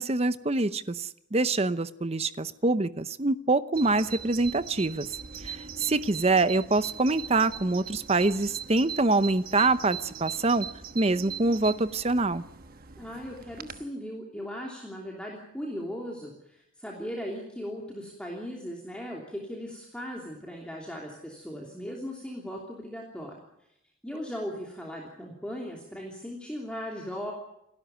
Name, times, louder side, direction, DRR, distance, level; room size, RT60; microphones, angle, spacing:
voice 1, 0.0-5.1 5.4-10.7 10.9-12.4, right 2 dB, 30° right, 14 dB, 0.8 m, -25 dB
Bird vocalization bird call bird song, 3.7-13.9, right 7 dB, 45° right, 1.2 m, -41 dB
voice 2, 13.0-23.4 24.0-27.3, equal, 5° left, -2 dB, 3.1 m, -38 dB
29.0 x 13.0 x 9.3 m, 0.84 s
head